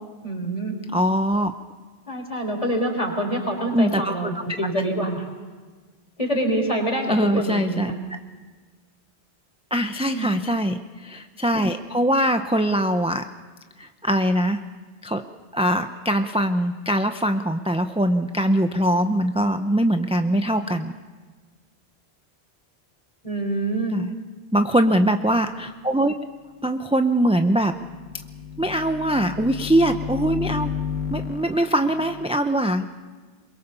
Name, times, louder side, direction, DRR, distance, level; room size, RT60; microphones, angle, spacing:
voice 1, 0.2-0.7 2.1-5.3 6.2-7.1 7.3-8.0 10.0-10.3 23.2-23.9, right 1 dB, 30° left, 3 dB, 4.0 m, -26 dB
voice 2, 0.9-1.5 3.7-4.3 7.1-7.9 9.7-13.3 13.8-14.6 15.0-15.2 15.5-20.9 23.9-24.1 24.5-26.1 26.6-27.8 28.6-30.7 31.1-32.9, right 1 dB, 5° right, 7 dB, 0.5 m, -22 dB
sound 1, 27.5-32.3, left 7 dB, 75° left, 1.4 m, -32 dB
23.0 x 22.0 x 7.0 m, 1.4 s
omnidirectional pair, 1.1 m